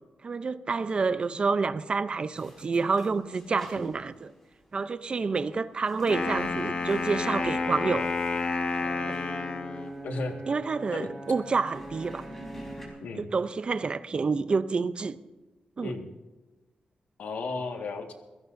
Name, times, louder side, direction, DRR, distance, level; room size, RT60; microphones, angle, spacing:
voice 1, 0.2-4.3 4.7-8.1 9.1-9.2 10.5-12.2 13.2-15.2 15.8-15.9, right 4 dB, 40° right, 0.5 m, -28 dB
sound 1, 2.4-12.9, equal, 10° left, 4.1 m, -48 dB
Wind instrument woodwind instrument, 6.0-10.0, left 3 dB, 45° left, 1.1 m, -30 dB
Brass instrument, 8.8-13.0, right 2 dB, 20° right, 6.7 m, -42 dB
voice 2, 10.0-10.3 10.9-11.1 13.0-13.3 15.8-16.1 17.2-18.1, left 3 dB, 85° left, 1.6 m, -34 dB
26.0 x 16.5 x 2.6 m
wide cardioid pair, 130°, 3 cm